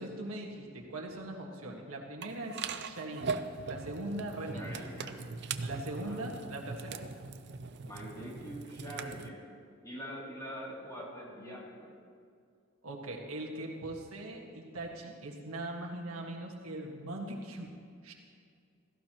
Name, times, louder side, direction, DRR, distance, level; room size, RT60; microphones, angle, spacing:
voice 1, 0.0-4.9 5.6-7.0 12.8-17.7 18.0-18.1, right 1 dB, 85° right, 0 dB, 1.7 m, -40 dB
sound 1, 2.2-9.3, right 5 dB, 55° right, 0.5 m, -40 dB
voice 2, 4.5-5.3 5.6-6.3 7.8-9.5 9.8-12.0, equal, 15° left, -5 dB, 2.8 m, -44 dB
16.5 x 14.5 x 3.0 m, 2.3 s
head